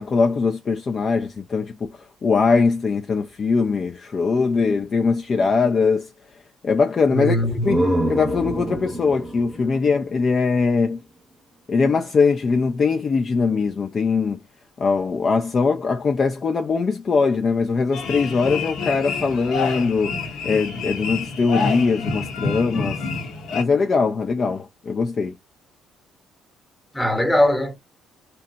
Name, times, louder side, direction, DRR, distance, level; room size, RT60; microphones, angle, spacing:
voice 1, 0.0-1.9 2.2-6.1 6.6-7.8 8.1-11.0 11.7-14.4 14.8-23.0 23.5-25.4, left 4 dB, 40° left, 0.4 m, -21 dB
voice 2, 7.1-7.8 26.9-27.8, equal, 10° left, 1.0 m, -21 dB
sound 1, 7.3-11.0, right 1 dB, 20° right, 0.8 m, -27 dB
sound 2, 17.9-23.6, left 4 dB, 60° left, 0.8 m, -28 dB
2.8 x 2.2 x 2.6 m
figure-of-eight pair, 45°, 0 cm